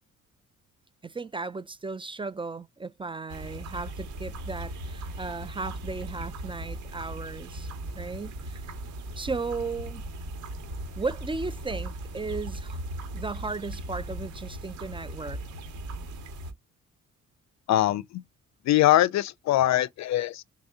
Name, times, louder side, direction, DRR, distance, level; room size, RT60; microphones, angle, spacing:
voice 1, 1.0-7.7 7.9-8.6 9.2-10.0 11.0-12.8 13.1-15.4, right 4 dB, 15° right, 0.4 m, -35 dB
sound 1, 3.3-16.5, right 1 dB, 70° right, 1.7 m, -38 dB
voice 2, 17.7-18.2 18.6-20.4, left 13 dB, 65° left, 0.4 m, -22 dB
4.0 x 2.7 x 3.5 m
cardioid pair, 90°, 30 cm